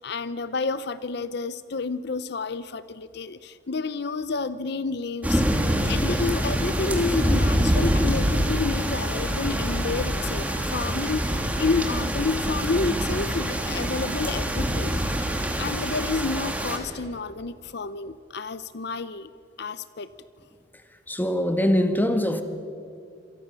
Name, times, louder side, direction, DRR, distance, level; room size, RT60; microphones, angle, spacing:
voice 1, 0.0-5.4 5.9-15.0 15.6-19.3 19.6-20.1, left 4 dB, 60° left, 0.7 m, -30 dB
sound 1, 5.2-16.8, equal, 10° right, 2.9 m, -25 dB
voice 2, 21.1-22.4, equal, 10° left, 1.8 m, -24 dB
28.0 x 27.0 x 6.9 m
head